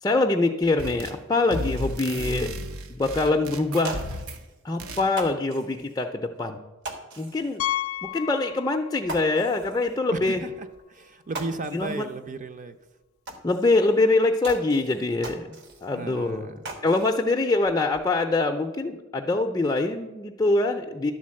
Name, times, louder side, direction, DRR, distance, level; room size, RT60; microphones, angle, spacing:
voice 1, 0.0-2.5 2.9-4.0 4.6-6.6 7.2-7.6 8.1-10.4 11.7-12.1 13.4-16.5 16.8-21.1, left 2 dB, 20° left, 2 dB, 0.4 m, -24 dB
sound 1, 0.8-1.2 1.5-4.5 4.8-5.1, equal, 80° right, 0.8 m, -34 dB
sound 2, 1.8-2.2 2.8-2.9 3.2-3.3 3.7-4.6 5.1-6.0 6.8-7.6 8.0-8.2 8.5-8.6 9.0-10.0 10.7-10.8 11.1-12.2 12.5-12.6 13.3-14.0 14.4-16.0 16.3-17.2 17.5-18.1, right 2 dB, 60° right, 1.2 m, -40 dB
voice 2, 2.3-2.7 10.1-12.8 15.9-16.7, right 3 dB, 40° right, 9 dB, 0.6 m, -35 dB
Piano, 7.6-9.2 9.5-9.6 10.2-10.3 10.6-10.7 12.7-12.8, left 14 dB, 85° left, 0.3 m, -32 dB
11.5 x 3.8 x 7.6 m, 1.1 s
head